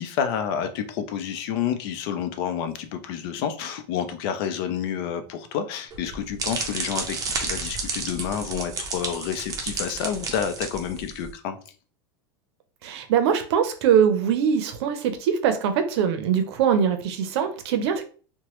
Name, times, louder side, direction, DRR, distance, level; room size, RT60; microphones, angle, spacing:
voice 1, 0.0-11.6, left 8 dB, 65° left, 9 dB, 0.5 m, -29 dB
sound 1, 5.9-11.3, right 4 dB, 25° right, 0.6 m, -31 dB
voice 2, 12.8-18.0, right 8 dB, 75° right, 8 dB, 0.6 m, -22 dB
2.9 x 2.2 x 2.9 m, 0.40 s
supercardioid pair, 130°, 14 cm